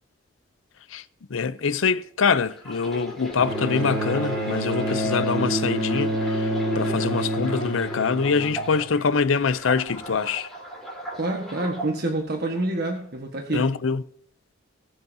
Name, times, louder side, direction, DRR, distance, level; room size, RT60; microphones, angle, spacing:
voice 1, 1.3-10.5 13.5-14.0, left 5 dB, 70° left, 0.6 m, -24 dB
sound 1, 2.5-9.0 9.4-11.9 12.6-12.8, equal, ahead, 3.7 m, -35 dB
Bowed string instrument, 3.4-8.8 10.0-10.1, right 1 dB, 90° right, 5.3 m, -28 dB
voice 2, 11.1-13.7, right 2 dB, 50° right, 1.4 m, -27 dB
20.5 x 8.0 x 2.8 m
head